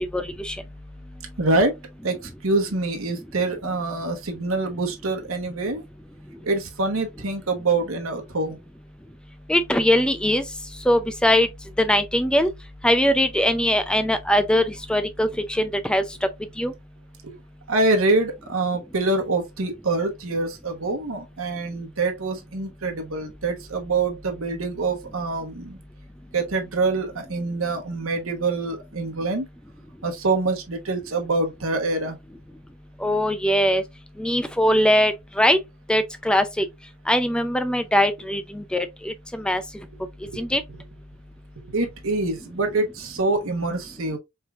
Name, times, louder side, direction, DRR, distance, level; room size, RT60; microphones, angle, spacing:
voice 1, 0.1-0.6 9.5-10.4 10.9-11.5 11.8-12.5 12.8-16.0 16.6-16.7 33.0-33.8 34.2-35.6 35.9-36.7 37.1-39.6 40.4-40.6, equal, 5° left, 0.4 m, -21 dB
voice 2, 1.4-1.8 2.0-5.8 6.4-8.6 17.2-17.3 17.7-25.8 26.3-29.5 30.0-32.2 40.3-40.4 40.7-40.8 41.7-44.2, right 3 dB, 85° right, 1.1 m, -25 dB
4.5 x 3.4 x 2.4 m
head